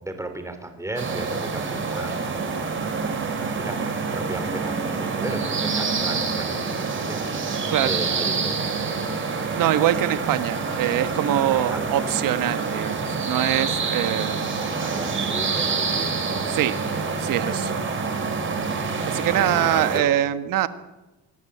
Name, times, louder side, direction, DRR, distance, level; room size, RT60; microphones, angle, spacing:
voice 1, 0.0-2.4 3.6-3.8 4.1-6.8 7.1-9.2 11.5-11.9 13.5-13.9 14.8-16.7 17.5-17.8 19.3-20.1, right 1 dB, 10° right, 8 dB, 4.4 m, -35 dB
sound 1, 1.0-20.0, right 4 dB, 35° right, 5.2 m, -27 dB
voice 2, 9.5-14.4 16.5-16.7 17.2-17.7 19.0-20.7, right 12 dB, 70° right, 12 dB, 1.5 m, -23 dB
26.0 x 18.5 x 8.7 m, 1.1 s
cardioid pair, 120°, 35 cm